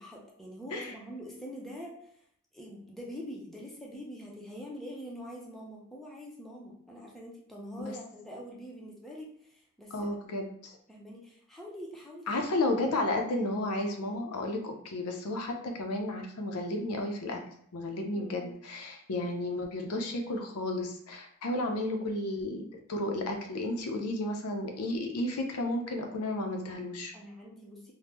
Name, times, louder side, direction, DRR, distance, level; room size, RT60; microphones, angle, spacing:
voice 1, 0.0-1.9 2.5-9.9 10.9-12.4 18.1-18.5 27.1-27.9, equal, ahead, -3 dB, 0.5 m, -44 dB
voice 2, 9.9-10.8 12.3-17.4 17.7-27.1, left 1 dB, 80° left, 3 dB, 0.5 m, -33 dB
3.4 x 2.1 x 2.9 m, 0.66 s
head